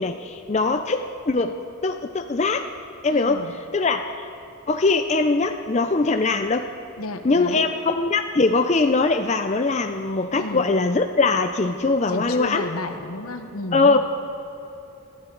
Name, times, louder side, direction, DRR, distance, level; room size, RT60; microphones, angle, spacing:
voice 1, 0.0-1.5 1.8-2.7 3.0-4.3 4.7-6.7 7.2-12.6 13.7-14.0, left 3 dB, 30° left, 6 dB, 0.5 m, -21 dB
voice 2, 3.1-3.5 7.0-7.7 10.3-10.7 12.1-14.0, left 2 dB, 80° left, 7 dB, 1.1 m, -32 dB
21.0 x 14.0 x 3.9 m, 2.9 s
head